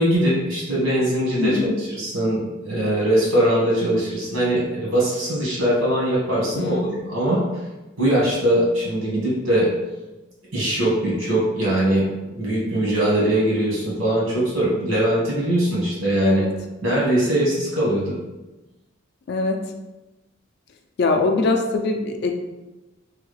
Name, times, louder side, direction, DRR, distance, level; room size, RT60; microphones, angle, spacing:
voice 1, 0.0-6.8 7.1-7.4 8.0-9.7 10.5-16.4 16.8-18.2, right 1 dB, 75° right, -5 dB, 1.3 m, -21 dB
voice 2, 1.4-1.7 6.6-6.9 16.2-16.5 19.3-19.6 21.0-22.3, left 3 dB, 50° left, 4 dB, 0.3 m, -22 dB
3.3 x 2.3 x 3.1 m, 1.1 s
head